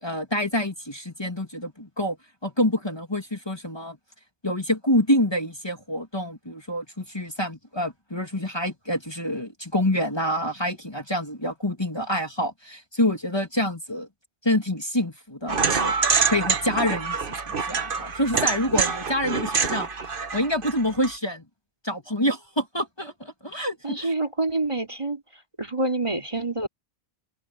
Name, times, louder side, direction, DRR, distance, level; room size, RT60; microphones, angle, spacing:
voice 1, 0.0-2.2 2.4-4.0 4.4-14.1 14.4-15.9 16.3-21.4 21.8-24.1, left 1 dB, 25° left, 2.8 m, -27 dB
sound 1, 15.5-21.1, right 5 dB, 55° right, 1.4 m, -26 dB
voice 2, 23.8-25.2 25.6-26.7, right 2 dB, 30° right, 3.2 m, -27 dB
omnidirectional pair, 1.1 m